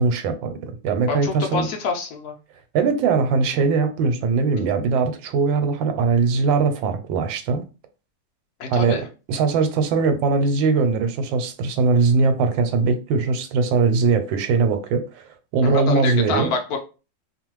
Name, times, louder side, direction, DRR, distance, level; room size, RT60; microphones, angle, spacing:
voice 1, 0.0-1.7 2.7-7.6 8.7-9.0 9.3-16.5, right 4 dB, 85° right, 1.3 m, -21 dB
voice 2, 1.1-2.3 8.6-9.0 15.6-16.8, left 4 dB, 65° left, 1.0 m, -26 dB
3.0 x 2.2 x 3.0 m
omnidirectional pair, 2.0 m